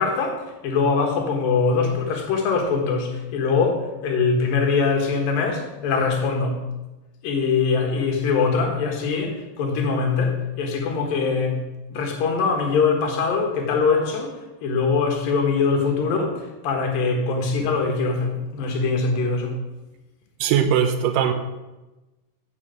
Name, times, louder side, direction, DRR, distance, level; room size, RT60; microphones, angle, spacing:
voice 1, 0.0-6.6 7.2-11.6 11.9-19.6, left 4 dB, 80° left, 2 dB, 3.2 m, -22 dB
voice 2, 20.4-21.3, right 8 dB, 80° right, 8 dB, 2.2 m, -20 dB
7.8 x 7.5 x 6.4 m, 1.1 s
omnidirectional pair, 4.1 m